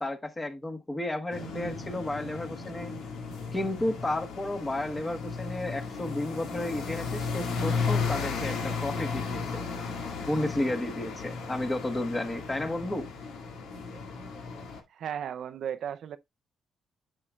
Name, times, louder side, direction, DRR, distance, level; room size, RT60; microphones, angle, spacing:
voice 1, 0.0-3.0 3.5-9.7 10.2-13.1, left 1 dB, 20° left, 1.3 m, -32 dB
sound 1, 1.3-14.8, left 4 dB, 85° left, 2.0 m, -34 dB
voice 2, 14.9-16.2, right 9 dB, 65° right, 0.5 m, -35 dB
9.8 x 6.2 x 2.3 m
cardioid pair, 90°, 0 cm